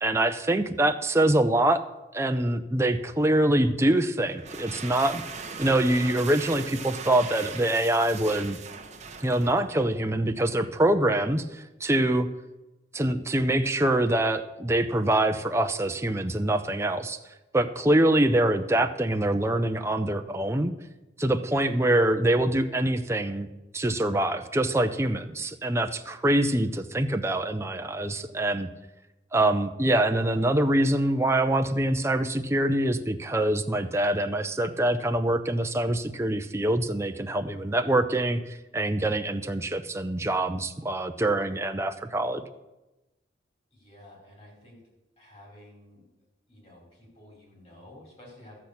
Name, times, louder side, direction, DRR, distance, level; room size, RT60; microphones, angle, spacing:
voice 1, 0.0-1.8 2.1-5.2 5.6-8.6 9.2-12.3 12.9-17.2 17.5-20.7 21.2-23.5 23.7-28.7 29.3-42.4, right 1 dB, 15° right, 7 dB, 0.6 m, -24 dB
sound 1, 4.3-10.0, right 6 dB, 40° right, 1.1 m, -39 dB
voice 2, 43.7-44.8 45.2-46.0 46.5-48.6, left 1 dB, 35° left, -3 dB, 5.4 m, -51 dB
13.0 x 6.1 x 8.5 m, 1.0 s
head